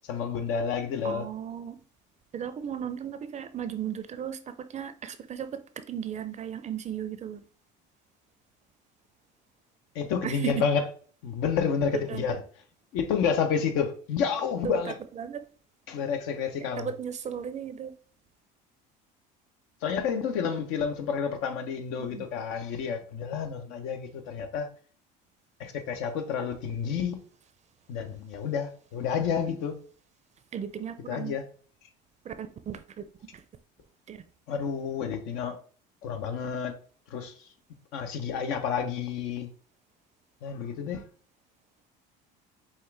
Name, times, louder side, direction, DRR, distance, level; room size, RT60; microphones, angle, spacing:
voice 1, 0.1-1.2 9.9-10.8 11.2-12.4 12.9-15.0 15.9-16.9 19.8-24.7 25.6-27.2 27.9-29.8 31.1-31.5 34.5-35.6 36.0-36.8 37.1-37.3 37.9-39.5 40.4-41.0, left 6 dB, 75° left, 0.9 m, -30 dB
voice 2, 1.0-1.8 2.3-7.4 10.2-10.6 12.1-12.3 14.6-15.4 16.6-17.9 22.0-22.3 30.5-31.4 32.2-33.0 33.3-33.4 34.1-34.2, right 8 dB, 35° right, 0.5 m, -36 dB
5.5 x 2.5 x 3.3 m
supercardioid pair, 100°, 21 cm